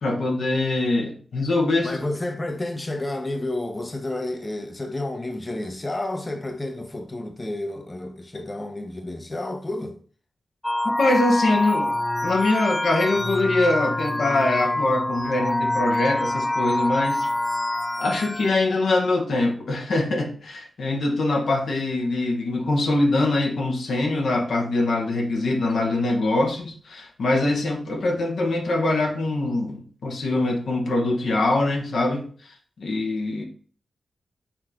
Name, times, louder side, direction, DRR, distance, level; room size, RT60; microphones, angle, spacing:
voice 1, 0.0-2.0 10.8-11.9 12.2-17.3 18.0-32.3 32.8-33.4, left 2 dB, 75° left, 1.5 m, -23 dB
voice 2, 1.8-10.0, left 2 dB, 30° left, 1.1 m, -30 dB
sound 1, 10.6-18.6, left 1 dB, 10° left, 0.4 m, -26 dB
6.1 x 4.3 x 5.1 m
cardioid pair, 60°, 0 cm